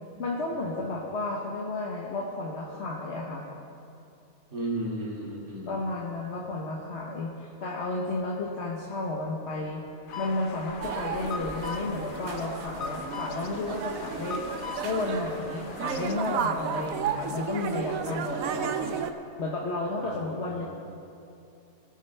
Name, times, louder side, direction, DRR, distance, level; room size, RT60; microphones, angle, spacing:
voice 1, 0.2-3.4 5.7-9.8 10.2-14.4 14.8-19.0 19.4-20.7, left 2 dB, 50° left, -3 dB, 1.2 m, -32 dB
voice 2, 4.5-5.7 20.0-20.7, right 1 dB, 50° right, -5 dB, 2.8 m, -34 dB
sound 1, 10.1-16.1, left 6 dB, 65° left, 0.5 m, -40 dB
sound 2, 10.8-19.1, right 7 dB, 70° right, 1.0 m, -33 dB
20.0 x 8.8 x 3.3 m, 2.7 s
omnidirectional pair, 1.6 m